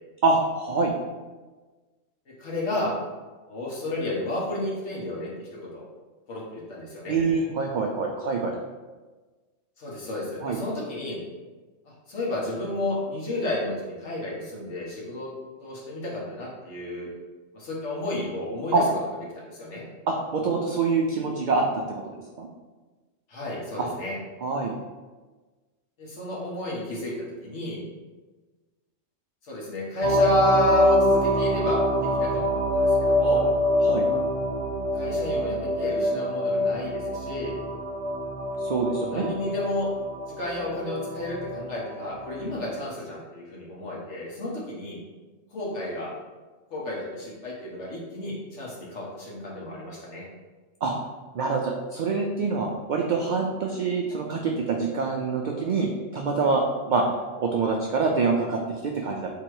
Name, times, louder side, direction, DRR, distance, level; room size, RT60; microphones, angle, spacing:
voice 1, 0.2-0.9 7.1-8.6 10.4-10.6 18.7-18.8 20.1-22.0 22.4-22.5 23.8-23.9 24.4-24.7 33.8-34.1 38.6-39.3 50.8-50.9 51.3-55.9 56.1-57.0 57.4-59.3, right 4 dB, 75° right, 1 dB, 0.4 m, -25 dB
voice 2, 2.4-2.9 3.5-5.8 6.3-7.2 9.8-11.2 11.8-15.3 15.6-17.1 17.5-18.8 19.3-19.8 23.3-24.1 26.0-27.8 29.4-32.4 32.7-33.5 34.9-37.6 38.9-39.9 40.3-45.0 45.5-46.1 46.7-50.3, left 1 dB, 65° left, -4 dB, 1.5 m, -31 dB
sound 1, 30.0-42.6, equal, 45° right, 0.8 m, -25 dB
3.8 x 3.0 x 4.6 m, 1.3 s
omnidirectional pair, 1.3 m